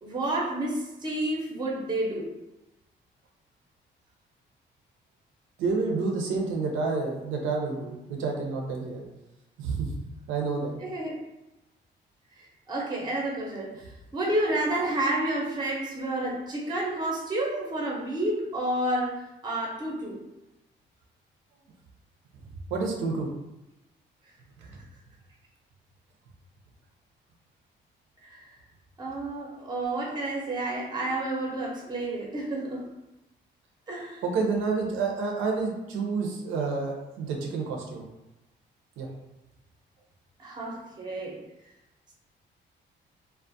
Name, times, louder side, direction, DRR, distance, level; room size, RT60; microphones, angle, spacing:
voice 1, 0.0-2.3 10.8-11.1 12.4-19.2 19.4-20.2 28.2-28.5 29.0-32.8 33.9-34.2 40.4-41.4, right 1 dB, 20° right, -3 dB, 0.6 m, -30 dB
voice 2, 5.6-9.0 9.6-10.8 22.7-23.3 24.6-24.8 31.0-31.2 34.2-38.0 39.0-39.1, right 4 dB, 85° right, 0 dB, 0.6 m, -29 dB
2.3 x 2.1 x 2.6 m, 0.95 s
cardioid pair, 90°, 20 cm